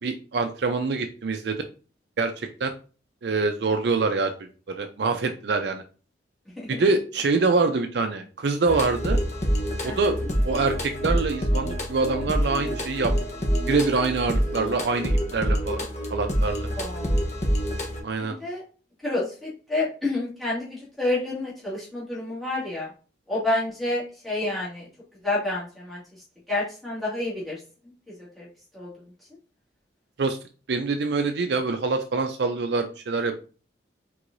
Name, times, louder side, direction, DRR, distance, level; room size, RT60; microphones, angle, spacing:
voice 1, 0.0-1.6 2.2-2.7 3.2-4.3 4.7-5.8 6.7-9.2 9.8-10.2 10.5-13.1 13.7-15.8 16.1-16.6 18.0-18.4 30.2-30.4 30.7-33.4, right 4 dB, 65° right, 6 dB, 0.4 m, -25 dB
sound 1, 8.6-18.0, equal, 40° left, 0.9 m, -26 dB
voice 2, 16.8-17.2 18.2-18.6 19.0-22.9 23.3-24.9 25.2-26.0 26.5-27.6 28.4-28.5 28.7-28.9, left 2 dB, ahead, -9 dB, 2.0 m, -29 dB
4.6 x 3.7 x 2.6 m, 0.37 s
head